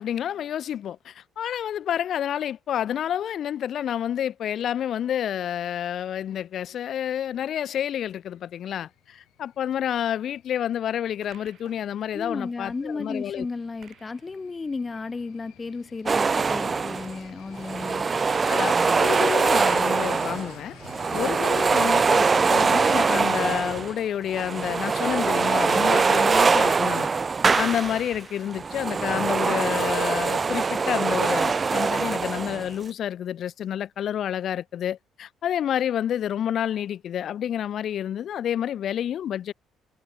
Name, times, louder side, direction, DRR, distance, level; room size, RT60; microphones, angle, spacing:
voice 1, 0.0-13.5 18.5-20.7 21.1-27.1 27.6-39.5, left 10 dB, 50° left, 2.0 m, -29 dB
sound 1, 8.2-23.9, left 16 dB, 90° left, 5.1 m, -49 dB
sound 2, 10.9-27.1, right 10 dB, 50° right, 7.1 m, -58 dB
voice 2, 12.1-18.1, left 4 dB, 20° left, 0.7 m, -34 dB
sound 3, 16.1-17.2 17.5-20.6 20.8-23.9 24.3-28.2 28.5-32.7, right 5 dB, 25° right, 0.4 m, -23 dB
cardioid pair, 155°, 0 cm